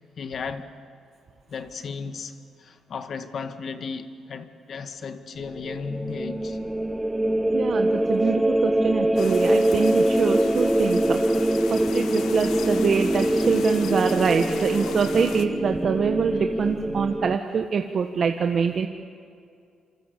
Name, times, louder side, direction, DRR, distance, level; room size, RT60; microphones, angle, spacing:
voice 1, 0.2-0.7 1.5-6.6 8.2-8.3 16.3-16.4, left 5 dB, 55° left, 2.0 m, -35 dB
sound 1, 5.4-17.4, right 1 dB, 10° right, 0.6 m, -24 dB
voice 2, 7.5-11.2 11.7-18.9, right 6 dB, 50° right, 1.4 m, -24 dB
sound 2, 9.2-15.5, left 9 dB, 80° left, 1.4 m, -37 dB
27.0 x 26.0 x 8.4 m
cardioid pair, 90°, 0 cm